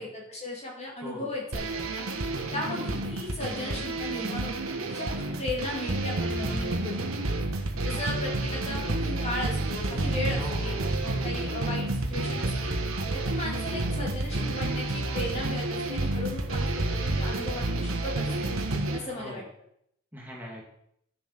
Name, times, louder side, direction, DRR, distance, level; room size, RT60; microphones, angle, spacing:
voice 1, 0.0-2.1 2.5-7.4 7.8-12.7 13.1-18.5 18.9-19.4, left 1 dB, 30° left, -2 dB, 2.4 m, -36 dB
sound 1, 1.5-19.0, right 2 dB, 70° right, 1.3 m, -30 dB
voice 2, 2.7-3.1 10.3-11.3 18.8-19.5 20.1-20.6, equal, 10° right, -3 dB, 2.4 m, -42 dB
11.0 x 7.0 x 5.9 m, 0.73 s
head